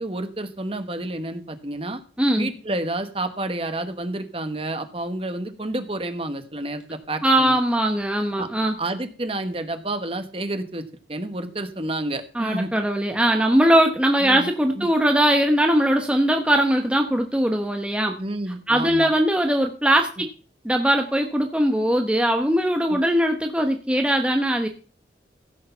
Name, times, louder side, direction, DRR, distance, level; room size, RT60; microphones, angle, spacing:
voice 1, 0.0-2.0 2.4-7.6 8.4-8.5 8.8-10.8 11.1-12.7 14.2-14.5 14.8-14.9 18.2-19.1 22.9-23.0, right 1 dB, 30° right, 9 dB, 1.2 m, -29 dB
voice 2, 2.2-2.5 7.2-8.8 12.3-18.2 18.7-20.3 20.6-24.7, right 1 dB, 5° right, 4 dB, 0.9 m, -20 dB
15.5 x 6.5 x 5.6 m, 0.37 s
head